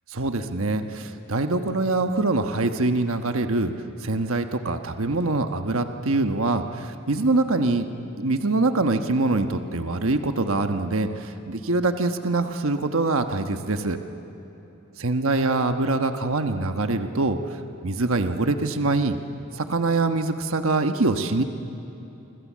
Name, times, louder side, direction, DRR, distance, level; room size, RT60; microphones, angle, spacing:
voice 1, 0.1-3.7 4.0-7.9 8.2-14.0 15.0-17.4 17.8-19.2 19.5-21.4, right 2 dB, 65° right, 7 dB, 1.3 m, -24 dB
27.5 x 26.0 x 7.5 m, 3.0 s
head